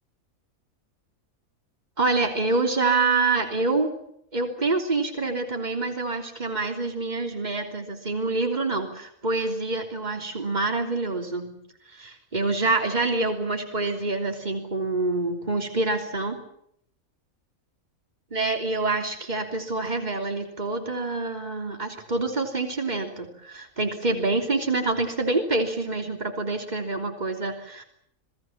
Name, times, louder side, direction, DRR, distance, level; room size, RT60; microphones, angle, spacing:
voice 1, 2.0-3.9 4.3-11.6 11.9-16.4 18.3-27.8, right 3 dB, 30° right, 3 dB, 3.5 m, -26 dB
28.0 x 20.0 x 7.4 m, 0.72 s
omnidirectional pair, 1.4 m